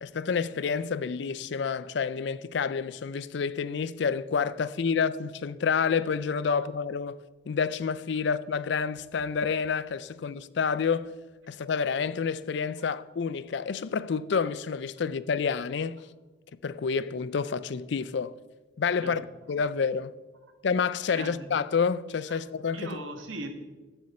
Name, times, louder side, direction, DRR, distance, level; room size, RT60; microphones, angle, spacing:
voice 1, 0.0-7.2 7.5-11.1 11.5-16.0 16.6-18.3 18.8-19.2 19.5-20.1 20.6-23.0, left 6 dB, 65° left, 0.4 m, -29 dB
voice 2, 21.1-21.5 22.3-22.4 22.7-23.5, right 2 dB, 85° right, 1.5 m, -38 dB
13.0 x 8.1 x 4.3 m
head